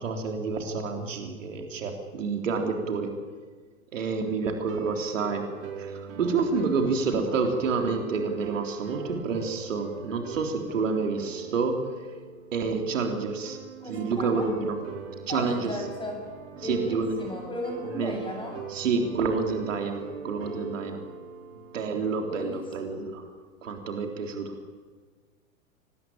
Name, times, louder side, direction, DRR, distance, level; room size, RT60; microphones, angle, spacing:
voice 1, 0.0-3.1 3.9-5.5 5.8-11.8 12.5-13.6 13.9-14.8 15.3-15.8 16.6-17.2 18.0-18.1 18.7-20.0 20.2-21.0 21.7-23.2 23.6-24.6, right 4 dB, 65° right, 4 dB, 3.8 m, -28 dB
sound 1, 4.6-22.6, right 6 dB, 45° right, 3.3 m, -42 dB
voice 2, 13.8-14.5 15.3-16.3 16.6-18.6 22.2-23.0, left 1 dB, 10° left, 2 dB, 7.9 m, -36 dB
25.0 x 19.0 x 8.9 m, 1.5 s
figure-of-eight pair, 105°, 41 cm